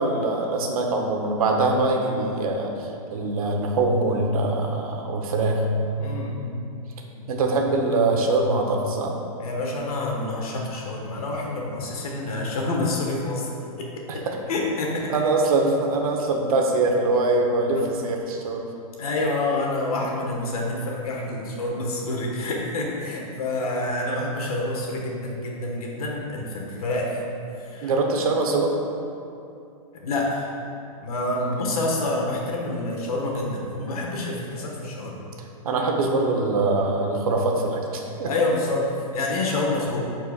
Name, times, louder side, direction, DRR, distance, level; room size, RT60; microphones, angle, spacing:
voice 1, 0.0-5.7 7.3-9.1 14.1-14.4 15.1-18.6 27.8-28.7 31.4-31.6 35.6-38.3, right 2 dB, 75° right, 1 dB, 1.1 m, -23 dB
voice 2, 6.0-6.6 7.1-7.3 9.4-13.5 13.8-13.9 14.5-15.1 17.7-17.9 19.0-27.2 27.6-27.9 29.9-30.5 31.0-35.2 38.2-40.1, left 2 dB, 75° left, -2 dB, 1.5 m, -27 dB
11.0 x 4.5 x 2.4 m, 2.6 s
hypercardioid pair, 155°, 19 cm